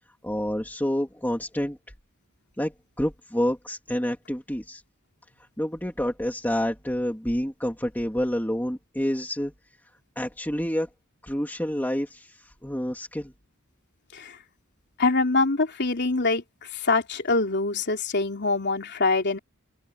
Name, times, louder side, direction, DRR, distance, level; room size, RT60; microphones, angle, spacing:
voice 1, 0.2-1.8 2.6-4.8 5.6-9.5 10.2-10.9 11.2-13.3, equal, 10° left, 2.9 m, -28 dB
voice 2, 15.0-19.4, left 3 dB, 55° left, 3.4 m, -24 dB
open air
head